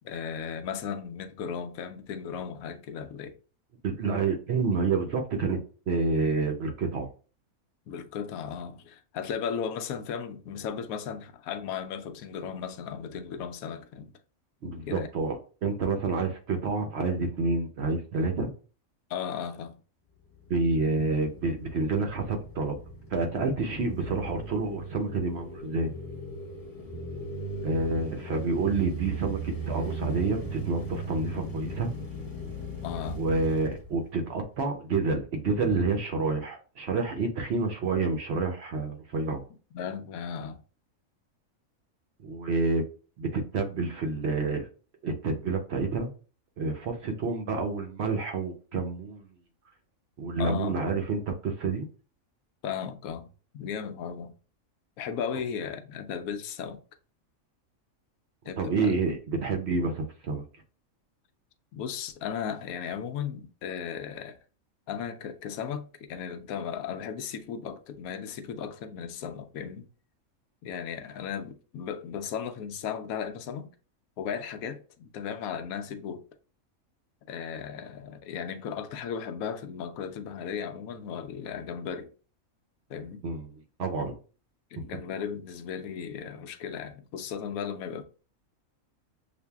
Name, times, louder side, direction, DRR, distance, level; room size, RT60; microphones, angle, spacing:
voice 1, 0.0-3.4 7.9-14.1 14.9-15.1 19.1-19.8 32.8-33.2 39.7-40.6 50.4-50.8 52.6-54.4 55.0-56.8 58.5-59.0 61.7-64.4 64.9-69.9 70.6-73.7 74.2-76.2 77.3-82.1 82.9-83.2 84.7-88.0, left 7 dB, 90° left, 1.0 m, -36 dB
voice 2, 3.8-5.6 5.9-7.1 14.6-18.5 20.5-22.8 23.1-25.9 27.6-31.9 33.1-39.4 42.2-42.8 43.2-44.7 45.0-46.1 46.6-49.3 50.2-51.9 58.6-60.4 83.2-84.1, right 3 dB, 60° right, 0.8 m, -28 dB
sound 1, 20.2-34.5, right 2 dB, 15° left, 0.9 m, -38 dB
6.7 x 2.6 x 2.3 m
omnidirectional pair, 1.4 m